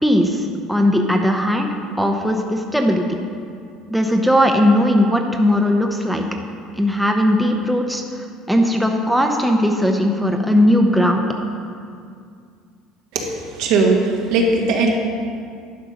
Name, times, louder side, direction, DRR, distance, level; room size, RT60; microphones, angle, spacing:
voice 1, 0.0-1.7 2.0-3.1 3.9-6.2 6.8-8.0 8.5-11.3, equal, ahead, 2 dB, 0.8 m, -18 dB
voice 2, 13.1-14.9, right 3 dB, 75° right, -1 dB, 1.5 m, -19 dB
11.0 x 5.5 x 5.1 m, 2.3 s
supercardioid pair, 105°, 0 cm